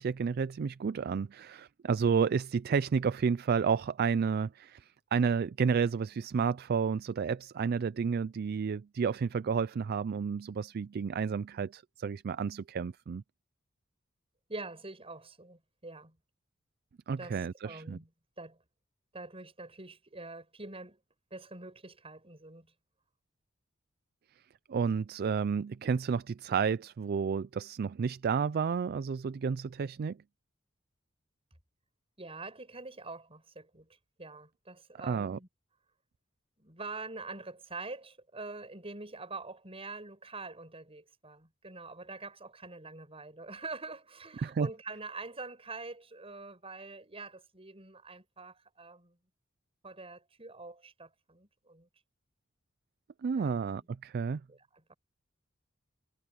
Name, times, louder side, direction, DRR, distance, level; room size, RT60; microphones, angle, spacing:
voice 1, 0.0-13.2 17.1-18.0 24.7-30.2 35.0-35.4 44.4-44.7 53.2-54.4, right 6 dB, 50° right, 0.4 m, -31 dB
voice 2, 14.5-16.2 17.2-18.1 18.4-18.6 19.1-21.0 21.3-22.7 32.2-33.9 34.2-35.5 36.6-49.2 49.8-51.9 53.4-53.6 54.5-54.9, right 3 dB, 30° right, 7.7 m, -45 dB
head